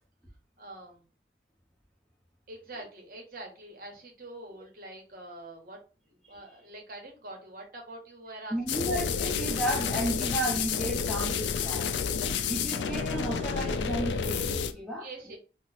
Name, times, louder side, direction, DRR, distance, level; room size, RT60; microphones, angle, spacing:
voice 1, 0.6-1.1 2.5-8.8 15.0-15.4, right 2 dB, 50° right, 0.9 m, -45 dB
voice 2, 8.5-15.4, right 1 dB, ahead, 0.7 m, -34 dB
sound 1, 8.7-14.7, left 6 dB, 80° left, 0.3 m, -30 dB
2.8 x 2.0 x 3.9 m
head